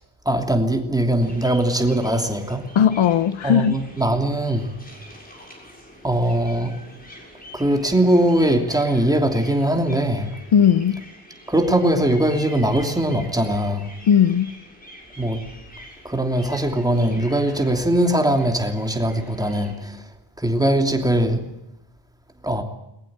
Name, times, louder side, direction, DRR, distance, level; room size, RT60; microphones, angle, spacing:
voice 1, 0.2-2.7 3.4-4.8 6.0-6.7 7.5-10.3 11.5-13.9 15.2-15.4 16.0-20.1 20.4-21.4 22.4-22.6, right 1 dB, 10° right, 2.9 m, -21 dB
sound 1, 1.2-19.8, equal, 20° left, 7.0 m, -45 dB
voice 2, 2.7-3.8 10.5-11.0 14.1-14.5, left 8 dB, 75° left, 1.1 m, -17 dB
21.5 x 20.5 x 8.9 m
wide cardioid pair, 180°, 48 cm